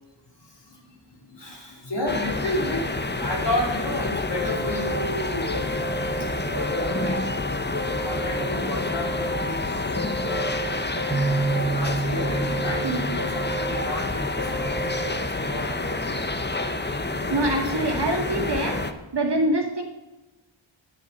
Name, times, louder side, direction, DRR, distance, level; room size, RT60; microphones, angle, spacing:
voice 1, 1.3-2.9 3.2-5.6 6.0-6.1 6.4-7.2 8.0-10.5 11.5-16.2 17.6-17.8, left 1 dB, 60° left, -1 dB, 2.6 m, -32 dB
sound 1, 2.1-18.9, left 2 dB, 20° left, 0.8 m, -28 dB
sound 2, 4.3-6.2 6.6-8.4 8.8-10.6 11.0-12.9 13.2-15.1, right 2 dB, 35° right, 1.3 m, -33 dB
sound 3, 11.1-14.8, right 3 dB, 15° right, 0.5 m, -29 dB
voice 2, 12.8-13.2 17.3-18.8 19.1-19.8, right 1 dB, 55° right, 0 dB, 2.1 m, -25 dB
9.7 x 8.0 x 5.4 m, 1.1 s
wide cardioid pair, 60°, 48 cm